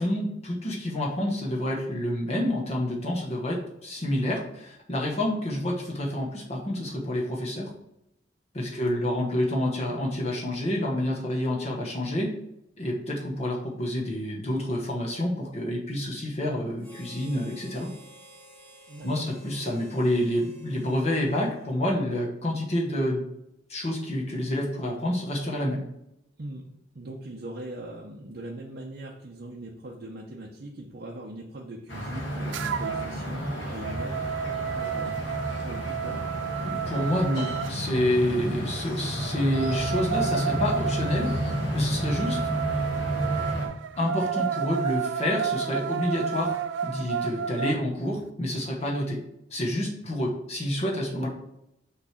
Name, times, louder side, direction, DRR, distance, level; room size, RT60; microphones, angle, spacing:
voice 1, 0.0-7.7 8.5-12.3 12.8-17.9 19.0-23.2 23.7-25.8 36.6-41.3 41.7-42.4 44.0-46.5 46.8-49.2 49.5-51.3, left 1 dB, 35° left, -1 dB, 1.0 m, -28 dB
voice 2, 8.8-9.2 18.9-19.1 26.4-26.6 26.9-35.2 35.6-36.2, right 1 dB, 50° right, -2 dB, 0.7 m, -40 dB
Harmonica, 16.8-22.3, right 1 dB, 10° left, 1.3 m, -53 dB
sound 1, 31.9-43.7, equal, 65° left, 1.6 m, -31 dB
sound 2, 32.5-33.1 33.5-37.7 39.2-47.8, right 8 dB, 75° right, 0.4 m, -31 dB
6.1 x 3.2 x 5.7 m, 0.82 s
head